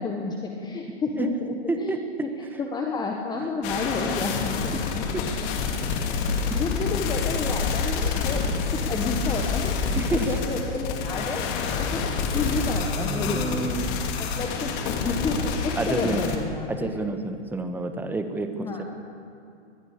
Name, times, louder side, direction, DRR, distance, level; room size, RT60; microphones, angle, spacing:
voice 1, 0.0-2.3 2.6-5.0 6.2-8.4 8.7-9.7 10.1-11.4 11.7-12.0 12.3-13.7 14.2-16.9 18.5-18.8, left 3 dB, 10° left, 1 dB, 1.4 m, -30 dB
voice 2, 1.7-2.0 4.7-4.9 5.1-5.3 6.5-6.6 10.0-10.4 13.0-14.0 15.8-16.2 16.7-18.8, right 3 dB, 5° right, 7 dB, 1.2 m, -29 dB
sound 1, 3.6-16.4, left 5 dB, 40° left, 2.7 m, -27 dB
22.5 x 21.0 x 6.7 m, 2.5 s
hypercardioid pair, 135°, 36 cm